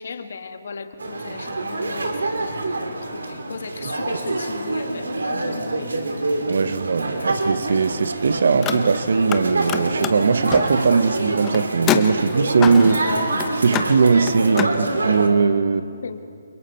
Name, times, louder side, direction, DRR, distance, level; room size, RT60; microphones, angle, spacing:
voice 1, 0.0-6.1 6.6-7.3 16.0-16.2, left 5 dB, 65° left, 1.6 m, -37 dB
sound 1, 1.0-15.3, right 2 dB, 85° right, 2.7 m, -26 dB
voice 2, 6.5-13.1 13.6-15.9, right 5 dB, 65° right, 1.0 m, -19 dB
Car, 8.5-9.4 9.7-14.8, left 10 dB, 20° left, 0.9 m, -28 dB
29.5 x 23.0 x 4.4 m
hypercardioid pair, 150°, 0 cm